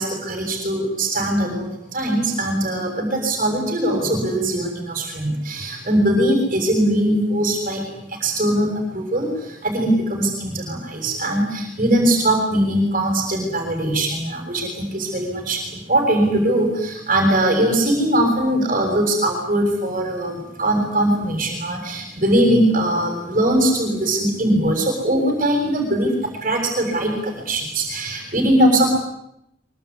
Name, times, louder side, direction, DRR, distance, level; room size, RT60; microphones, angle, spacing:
voice 1, 0.0-7.8 8.2-26.1 26.4-29.0, right 1 dB, 40° right, 2 dB, 6.9 m, -21 dB
25.0 x 24.5 x 9.8 m, 0.80 s
head